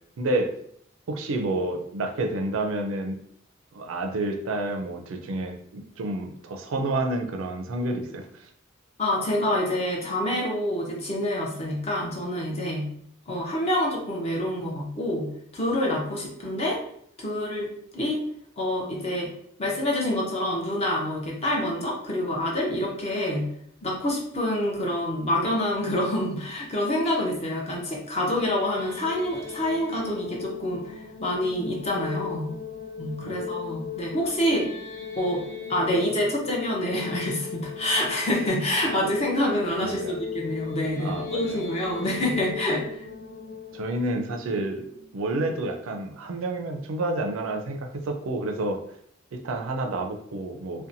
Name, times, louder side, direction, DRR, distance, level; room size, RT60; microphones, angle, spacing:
voice 1, 0.2-0.6 1.1-3.2 3.7-8.5 33.2-33.4 39.8-40.2 41.0-41.6 43.7-44.9 45.1-48.8 49.3-50.9, right 2 dB, 80° right, 4 dB, 0.4 m, -29 dB
voice 2, 9.0-12.9 13.3-16.8 17.2-18.2 18.6-19.3 19.6-23.5 23.8-32.5 33.0-34.7 35.2-35.4 35.7-43.0, left 1 dB, 30° left, -2 dB, 0.6 m, -27 dB
sound 1, 28.4-45.4, left 7 dB, 50° left, 0.9 m, -38 dB
2.7 x 2.1 x 2.6 m, 0.67 s
head